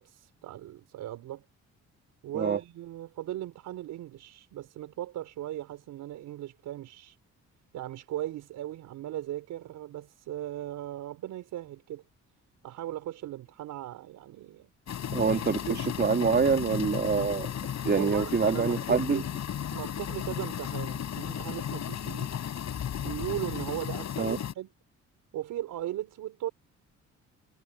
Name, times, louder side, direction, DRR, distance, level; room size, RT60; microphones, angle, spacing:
voice 1, 0.0-1.4 2.2-7.2 7.7-12.0 12.6-14.7 15.7-15.8 17.9-19.3 19.7-22.4 23.0-24.7 25.3-26.5, right 13 dB, 85° right, 4.6 m, -38 dB
sound 1, 14.9-24.5, left 9 dB, 60° left, 8.0 m, -34 dB
voice 2, 15.1-15.6 16.0-17.5 17.8-19.2 24.2-24.4, right 5 dB, 35° right, 3.2 m, -25 dB
cardioid pair, 90°, 30 cm